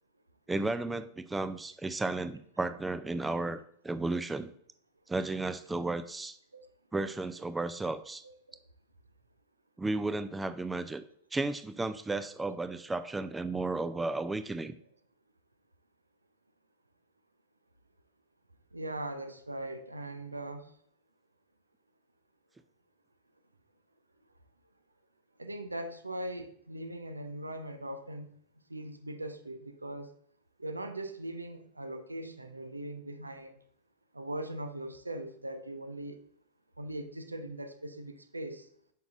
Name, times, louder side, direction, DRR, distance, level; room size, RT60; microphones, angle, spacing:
voice 1, 0.5-3.6 3.8-4.5 5.1-6.4 6.9-8.2 9.8-11.0 11.3-14.8, right 2 dB, 10° right, 12 dB, 0.4 m, -33 dB
voice 2, 8.2-8.6 18.7-20.7 25.4-28.3 28.7-30.1 30.6-33.6 34.1-36.2 36.8-38.7, right 1 dB, 80° right, 9 dB, 0.6 m, -40 dB
9.1 x 5.9 x 2.5 m, 0.65 s
figure-of-eight pair, 90°, 0 cm